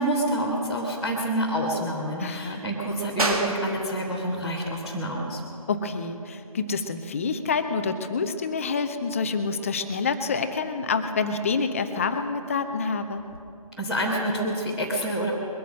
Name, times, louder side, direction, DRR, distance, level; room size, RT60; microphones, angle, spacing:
voice 1, 0.0-5.4 13.8-15.3, right 1 dB, 5° right, -11 dB, 1.3 m, -27 dB
voice 2, 2.2-2.6 5.7-13.2, left 4 dB, 25° left, 8 dB, 0.6 m, -27 dB
sound 1, 3.2-13.4, right 1 dB, 75° right, 2.2 m, -37 dB
22.0 x 9.2 x 6.4 m, 2.6 s
figure-of-eight pair, 155°, 19 cm